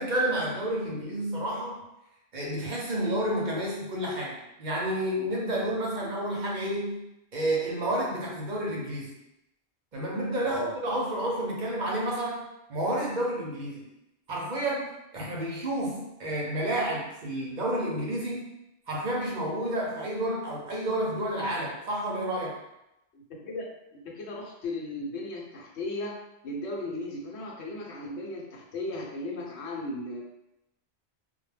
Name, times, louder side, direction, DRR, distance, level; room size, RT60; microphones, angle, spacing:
voice 1, 0.0-1.8 2.3-7.0 7.3-9.1 9.9-12.4 12.7-13.8 14.3-18.4 18.9-22.5, right 1 dB, 50° right, -3 dB, 0.7 m, -30 dB
voice 2, 10.4-10.7 23.1-26.2 26.4-30.2, left 2 dB, 80° left, -3 dB, 0.9 m, -36 dB
2.2 x 2.1 x 3.2 m, 0.89 s
omnidirectional pair, 1.1 m